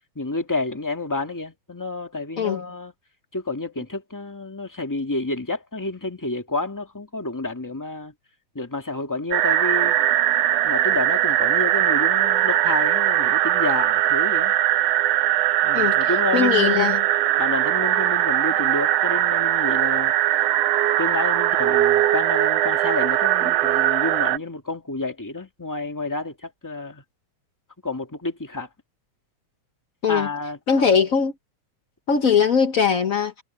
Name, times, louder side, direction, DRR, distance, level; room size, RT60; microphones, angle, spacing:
voice 1, 0.1-2.9 3.3-8.1 8.5-9.9 10.6-14.5 15.6-17.0 17.4-20.1 21.0-27.0 27.8-28.7 30.1-30.6, left 2 dB, 10° left, 1.5 m, -29 dB
sound 1, 9.3-24.4, right 13 dB, 70° right, 1.7 m, -20 dB
voice 2, 15.7-17.1 30.0-30.3 30.7-31.3 32.1-33.4, left 6 dB, 85° left, 0.7 m, -20 dB
omnidirectional pair, 3.3 m